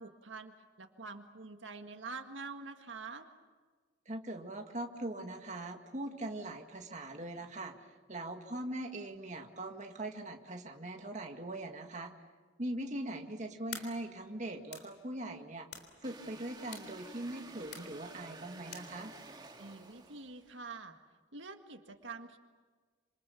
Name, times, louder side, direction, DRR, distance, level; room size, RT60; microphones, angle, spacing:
voice 1, 0.0-3.3 19.6-21.0 21.3-22.4, right 4 dB, 80° right, 6 dB, 1.8 m, -46 dB
voice 2, 4.1-12.1 12.6-15.7 16.0-19.1, right 1 dB, 40° right, 3 dB, 1.9 m, -41 dB
sound 1, 13.7-19.5, left 6 dB, 60° left, 3.6 m, -52 dB
sound 2, 16.0-20.6, right 3 dB, 25° right, 2.0 m, -52 dB
27.0 x 26.5 x 7.1 m, 1.5 s
head